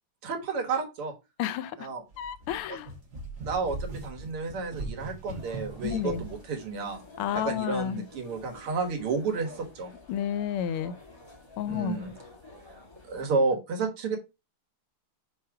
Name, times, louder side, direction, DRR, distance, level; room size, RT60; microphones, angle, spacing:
voice 1, 0.2-1.1 1.8-2.0 2.7-2.8 3.4-7.0 7.3-9.9 11.6-12.1 13.1-14.2, right 4 dB, 85° right, 2.4 m, -31 dB
voice 2, 1.4-1.9 2.2-2.9 5.8-6.2 7.2-8.0 10.1-10.9 11.6-12.0, left 10 dB, 80° left, 1.5 m, -31 dB
sound 1, 2.1-6.4, right 2 dB, 40° right, 2.1 m, -40 dB
sound 2, 5.4-13.4, left 2 dB, 15° left, 1.1 m, -50 dB
4.8 x 4.7 x 4.5 m
omnidirectional pair, 2.4 m